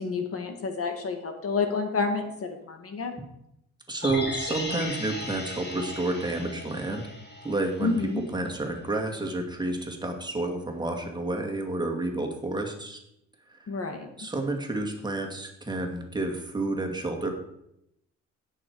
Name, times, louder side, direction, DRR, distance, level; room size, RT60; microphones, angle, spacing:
voice 1, 0.0-3.1 7.8-8.2 13.7-14.1, left 4 dB, 50° left, 5 dB, 1.9 m, -29 dB
voice 2, 3.9-7.1 7.4-13.0 13.5-13.7 14.2-17.3, right 2 dB, 15° right, 1 dB, 2.3 m, -30 dB
sound 1, 4.0-8.2 8.5-8.6, left 1 dB, 35° left, 3.8 m, -36 dB
16.5 x 6.6 x 4.8 m, 0.80 s
cardioid pair, 90°, 30 cm